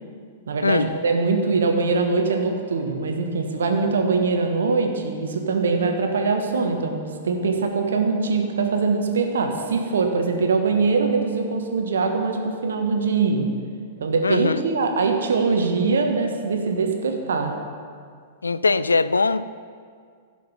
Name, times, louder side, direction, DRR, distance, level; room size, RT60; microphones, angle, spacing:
voice 1, 0.5-13.5 14.0-17.5, right 4 dB, 65° right, 4 dB, 1.2 m, -22 dB
voice 2, 14.2-14.6 18.4-19.4, left 4 dB, 80° left, 15 dB, 0.3 m, -21 dB
15.5 x 5.2 x 5.2 m, 2.1 s
figure-of-eight pair, 100°, 0 cm